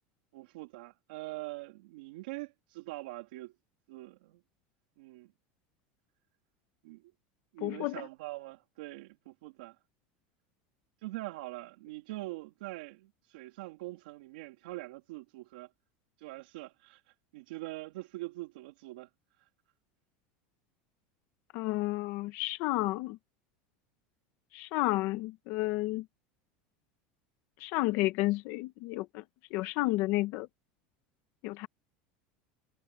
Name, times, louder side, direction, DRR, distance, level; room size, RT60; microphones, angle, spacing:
voice 1, 0.3-3.5 3.9-4.4 5.0-5.3 6.8-7.1 7.5-9.8 11.0-15.7 16.2-17.0 17.3-19.1 19.4-19.5, right 20 dB, 80° right, 2.7 m, -43 dB
voice 2, 7.6-8.0 21.5-23.2 24.5-26.1 27.6-29.2 29.5-30.5 31.4-31.7, left 19 dB, 55° left, 1.1 m, -31 dB
supercardioid pair, 160°, 5 cm